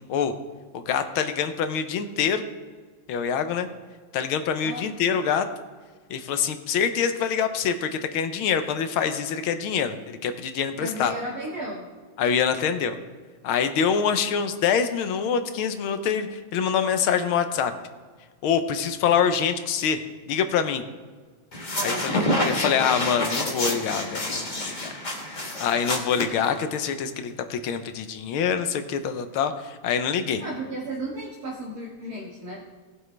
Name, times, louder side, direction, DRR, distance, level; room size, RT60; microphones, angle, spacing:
voice 1, 0.7-2.4 3.1-3.7 4.1-5.4 6.1-11.1 12.2-12.9 13.4-17.7 18.4-20.0 20.3-20.9 21.8-24.5 24.8-24.9 25.3-30.4, left 7 dB, 75° left, 9 dB, 1.5 m, -25 dB
voice 2, 10.8-11.9 21.7-22.6 30.4-32.6, right 1 dB, 45° right, -5 dB, 2.1 m, -34 dB
sound 1, 21.5-26.9, left 1 dB, 25° left, 1.4 m, -28 dB
18.5 x 7.8 x 3.3 m, 1.5 s
omnidirectional pair, 2.4 m